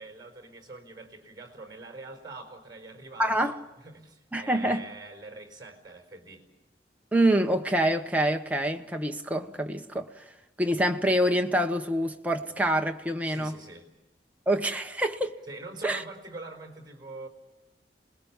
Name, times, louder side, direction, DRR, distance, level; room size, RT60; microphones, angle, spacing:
voice 1, 0.0-3.5 3.8-6.5 13.2-13.9 15.5-17.3, right 2 dB, 25° right, 4.6 m, -44 dB
voice 2, 3.2-3.6 4.3-4.8 7.1-10.2 10.6-13.6 14.5-15.4 15.8-16.0, right 1 dB, 10° right, 1.2 m, -26 dB
27.5 x 21.0 x 7.3 m
head